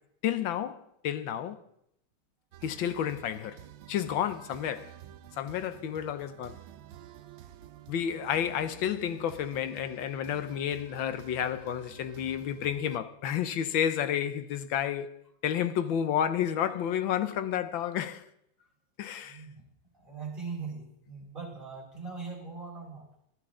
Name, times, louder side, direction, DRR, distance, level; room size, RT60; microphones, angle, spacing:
voice 1, 0.2-1.6 2.6-3.6 3.9-4.9 5.4-6.6 7.9-15.1 15.4-18.2 19.0-19.4, left 9 dB, 70° left, 1.5 m, -31 dB
sound 1, 2.5-13.0, right 11 dB, 75° right, 1.5 m, -50 dB
voice 2, 19.2-19.7 19.9-23.0, right 4 dB, 25° right, 5.8 m, -41 dB
21.0 x 13.0 x 3.8 m
omnidirectional pair, 2.3 m